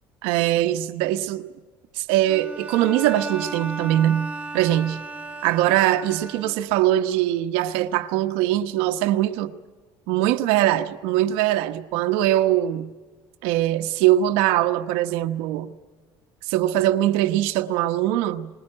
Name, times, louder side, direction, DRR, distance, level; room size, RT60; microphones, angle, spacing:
voice 1, 0.2-1.5 1.9-5.0 5.4-9.5 10.1-12.9 13.4-15.7 16.5-18.5, right 13 dB, 90° right, 1.1 m, -22 dB
Bowed string instrument, 2.3-6.9, right 3 dB, 15° right, 2.2 m, -35 dB
21.5 x 20.5 x 8.9 m
cardioid pair, 125°, 9 cm